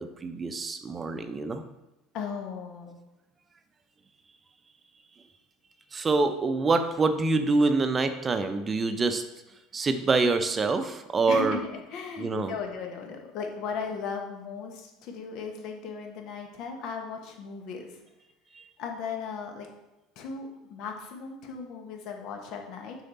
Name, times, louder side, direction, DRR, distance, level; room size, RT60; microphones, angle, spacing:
voice 1, 0.0-1.6 5.9-9.2 9.7-11.6 12.2-12.5 18.5-18.6, right 3 dB, 25° right, 8 dB, 0.7 m, -26 dB
voice 2, 2.1-3.0 11.3-18.0 18.8-19.7 20.1-23.0, left 5 dB, 55° left, 3 dB, 1.3 m, -36 dB
6.5 x 5.0 x 4.1 m, 0.97 s
hypercardioid pair, 70°, 0 cm